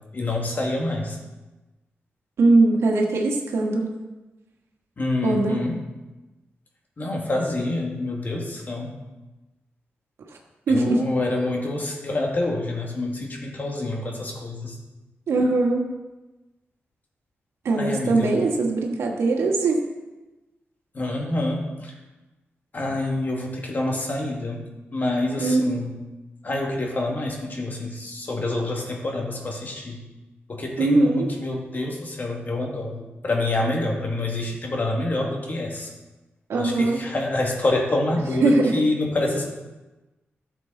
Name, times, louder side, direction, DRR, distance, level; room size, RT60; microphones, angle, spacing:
voice 1, 0.1-1.2 5.0-5.8 7.0-9.0 10.7-14.8 17.8-18.4 20.9-21.9 22.7-24.6 24.9-26.0 26.4-30.0 30.5-33.0 33.2-35.9 36.5-39.5, left 2 dB, 45° left, 0 dB, 2.2 m, -27 dB
voice 2, 2.4-3.9 5.2-5.7 10.7-11.0 15.3-15.8 17.6-19.8 25.4-25.6 30.8-31.3 36.5-37.0 38.4-38.8, right 2 dB, 85° right, 1 dB, 1.6 m, -20 dB
13.0 x 7.3 x 4.0 m, 1.1 s
cardioid pair, 80°, 4 cm